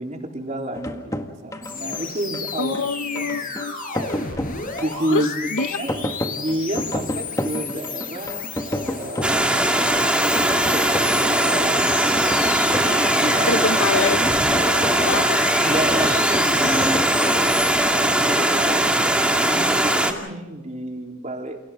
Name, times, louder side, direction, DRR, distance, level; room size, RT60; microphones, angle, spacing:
voice 1, 0.0-2.7 3.1-3.5 4.8-9.6 10.6-11.0 11.3-12.3 12.6-13.6 15.6-21.6, right 1 dB, 35° right, 1 dB, 3.8 m, -30 dB
sound 1, 0.7-17.5, left 1 dB, 15° left, 1.8 m, -31 dB
sound 2, 1.6-17.8, left 4 dB, 40° left, 6.1 m, -33 dB
voice 2, 2.6-3.7 5.1-5.8 13.5-14.2 15.0-15.4, left 4 dB, 70° left, 11 dB, 0.9 m, -25 dB
Stream, 9.2-20.1, right 1 dB, 5° right, 2.3 m, -20 dB
29.5 x 29.0 x 3.8 m, 1.0 s
head